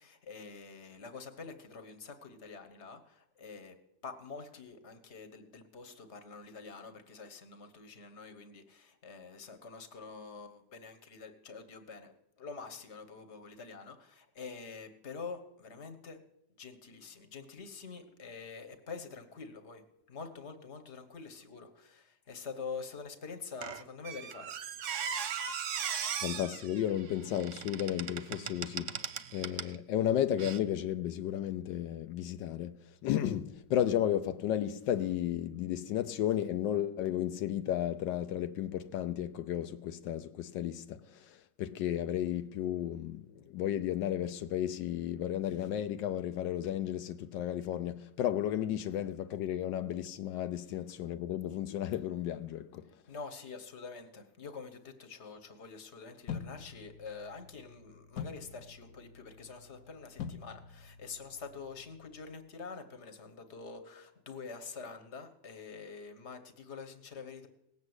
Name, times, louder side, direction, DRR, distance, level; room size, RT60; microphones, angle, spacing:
voice 1, 0.0-3.7 4.0-16.2 16.6-24.5 53.1-67.5, left 5 dB, 40° left, 1.5 m, -46 dB
Squeak, 23.6-29.8 30.4-30.6, right 8 dB, 55° right, 0.9 m, -38 dB
voice 2, 26.2-29.0 29.3-32.8 33.0-41.0 41.6-52.8, left 11 dB, 85° left, 1.3 m, -33 dB
sound 1, 56.3-62.3, left 7 dB, 65° left, 1.2 m, -46 dB
18.0 x 7.5 x 8.0 m
omnidirectional pair, 1.9 m